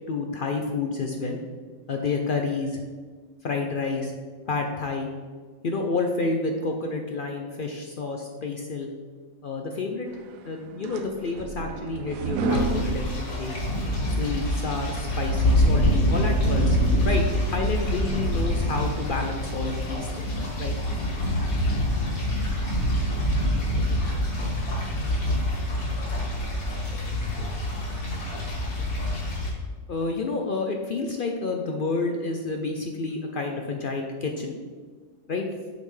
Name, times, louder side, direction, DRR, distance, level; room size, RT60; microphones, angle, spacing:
voice 1, 0.1-1.4 1.9-2.8 3.4-4.1 4.5-5.1 5.6-8.9 9.4-10.1 10.4-13.6 13.9-20.3 20.6-20.8 29.9-34.6 35.3-35.5, left 3 dB, 60° left, 3 dB, 0.6 m, -29 dB
sound 1, 10.4-14.0, right 2 dB, 85° right, 1.0 m, -30 dB
sound 2, 12.5-29.5, left 1 dB, 85° left, 2.1 m, -25 dB
7.7 x 5.5 x 3.2 m, 1.5 s
omnidirectional pair, 1.4 m